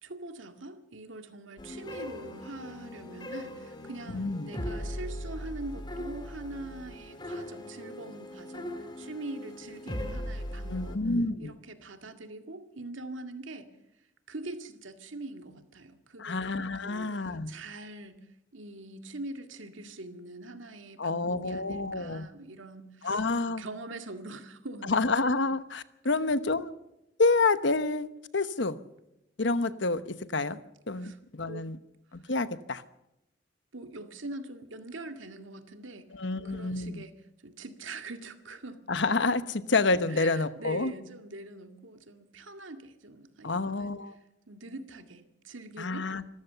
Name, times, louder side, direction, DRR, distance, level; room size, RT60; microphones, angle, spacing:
voice 1, 0.0-11.0 11.4-13.7 14.3-25.0 31.0-31.9 33.7-37.2 37.4-38.8 40.1-43.9 44.5-46.1, right 2 dB, 90° right, 7 dB, 2.0 m, -43 dB
sound 1, 1.6-11.0, left 1 dB, 25° left, 2.3 m, -39 dB
voice 2, 4.1-4.5 10.7-11.6 16.2-17.6 21.0-22.3 23.0-23.6 24.8-26.7 27.2-28.1 28.3-28.8 29.4-30.6 30.9-31.8 32.1-32.8 36.1-37.0 38.9-40.9 43.4-44.1 45.8-46.2, left 3 dB, 70° left, 13 dB, 1.0 m, -28 dB
26.5 x 14.0 x 6.9 m, 0.88 s
head